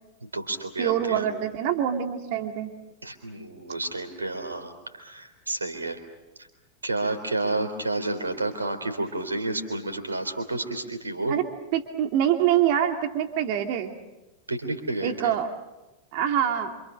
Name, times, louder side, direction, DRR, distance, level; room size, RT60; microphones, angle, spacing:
voice 1, 0.2-1.2 3.0-6.0 6.8-11.4 14.5-15.3, right 2 dB, 80° right, 7 dB, 3.7 m, -30 dB
voice 2, 0.8-2.7 11.3-11.4 11.7-13.9 15.0-15.5 16.1-16.7, right 10 dB, 45° right, 5 dB, 2.7 m, -25 dB
27.5 x 27.0 x 6.5 m, 1.0 s
figure-of-eight pair, 90°, 0 cm